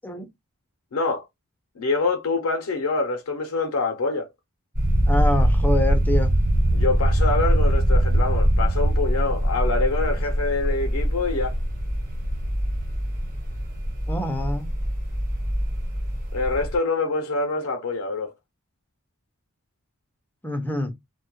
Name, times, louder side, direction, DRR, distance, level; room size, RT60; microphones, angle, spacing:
voice 1, 0.9-1.3 1.8-4.3 6.7-11.5 16.3-18.3, left 3 dB, 75° left, 0.5 m, -25 dB
sound 1, 4.7-16.7, equal, 40° right, 1.0 m, -22 dB
voice 2, 5.1-6.3 14.1-14.7 20.4-20.9, left 1 dB, 10° left, 0.4 m, -25 dB
2.2 x 2.0 x 2.8 m
head